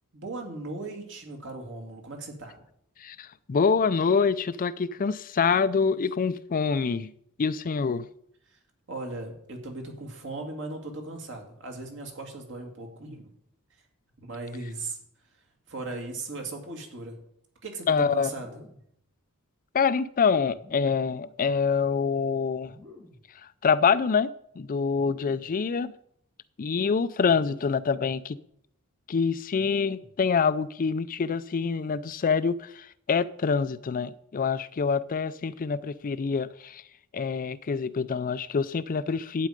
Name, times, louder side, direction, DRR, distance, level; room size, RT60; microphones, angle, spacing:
voice 1, 0.1-2.6 8.5-8.6 8.9-13.3 14.2-15.0 15.7-17.2 17.6-18.5, right 2 dB, 60° right, 2.5 m, -38 dB
voice 2, 3.0-7.1 7.4-8.1 17.9-18.3 19.7-22.7 23.6-24.3 24.6-25.9 26.6-28.4 29.1-36.8 37.1-39.5, left 5 dB, 40° left, 0.4 m, -26 dB
sound 1, 18.2-18.9 20.5-21.2 22.6-23.3 24.9-25.6 27.2-27.9 29.5-30.2, left 2 dB, 85° right, 6.1 m, -51 dB
11.5 x 8.6 x 5.1 m
head